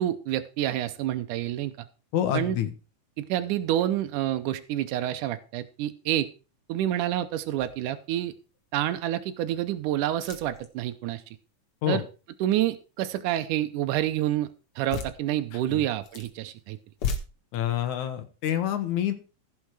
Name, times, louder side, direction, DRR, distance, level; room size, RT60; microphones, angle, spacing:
voice 1, 0.0-1.7 2.3-2.6 3.2-6.3 6.7-8.3 8.7-11.2 11.9-12.0 12.4-14.5 14.8-16.8, right 12 dB, 80° right, 9 dB, 2.3 m, -28 dB
voice 2, 2.1-2.7 11.8-12.0 15.5-15.8 17.5-19.1, left 10 dB, 70° left, 9 dB, 2.6 m, -27 dB
sound 1, 7.6-8.0 8.5-8.6 10.1-10.7 14.8-15.2 15.9-16.3 16.9-17.2, left 5 dB, 50° left, 2.2 m, -34 dB
15.5 x 6.5 x 4.8 m, 0.33 s
omnidirectional pair, 3.6 m